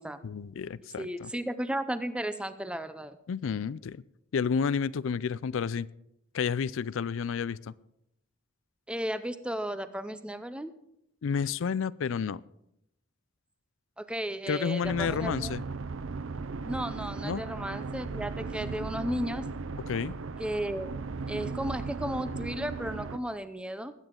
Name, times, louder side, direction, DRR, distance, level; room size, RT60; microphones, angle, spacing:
voice 1, 0.2-1.3 3.3-4.0 4.3-5.9 6.3-7.6 11.2-12.4 14.5-15.6 17.2-17.5 19.9-20.2, left 6 dB, 70° left, 0.4 m, -30 dB
voice 2, 1.0-3.2 8.9-10.7 14.0-15.6 16.7-19.5 20.4-20.9 21.3-23.9, right 1 dB, 5° right, 0.6 m, -34 dB
sound 1, 14.8-23.2, right 4 dB, 70° right, 0.6 m, -37 dB
20.5 x 9.1 x 3.8 m
head